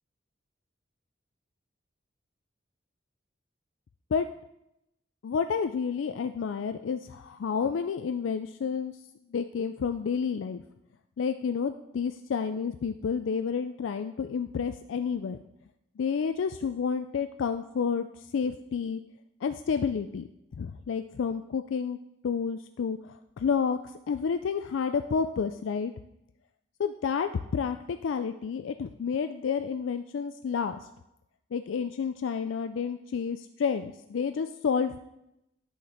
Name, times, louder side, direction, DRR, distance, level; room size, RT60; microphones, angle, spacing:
voice 1, 5.2-8.9 9.3-10.6 11.2-15.4 16.0-18.1 18.3-19.0 19.4-20.3 20.6-22.0 22.2-23.0 23.4-23.8 24.1-25.9 26.8-30.8 31.5-35.0, left 6 dB, 80° left, 9 dB, 0.4 m, -30 dB
10.5 x 6.4 x 4.3 m, 0.86 s
head